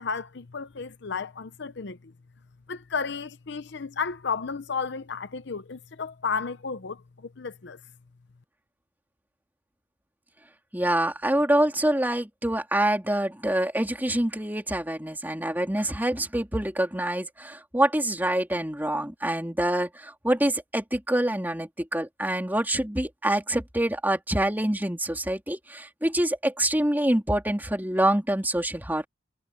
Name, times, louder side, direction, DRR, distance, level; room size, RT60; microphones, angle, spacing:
voice 1, 0.0-2.1 2.7-7.8, left 5 dB, 60° left, 0.7 m, -33 dB
voice 2, 10.7-29.1, right 1 dB, 10° right, 3.2 m, -26 dB
head